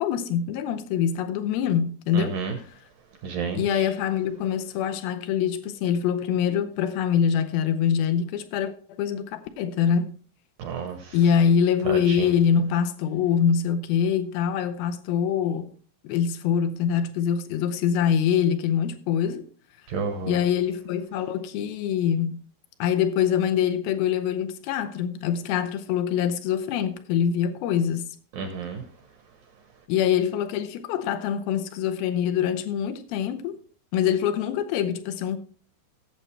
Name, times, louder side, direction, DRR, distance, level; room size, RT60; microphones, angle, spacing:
voice 1, 0.0-2.7 3.5-10.2 11.1-15.7 16.0-19.5 20.3-22.4 22.8-28.2 29.9-33.6 33.9-35.4, left 8 dB, 85° left, 2.1 m, -24 dB
voice 2, 2.2-2.5 3.2-3.6 10.6-11.0 11.9-12.0 19.9-20.4 28.4-28.8, right 5 dB, 70° right, 2.2 m, -30 dB
17.0 x 7.6 x 3.2 m
omnidirectional pair, 5.3 m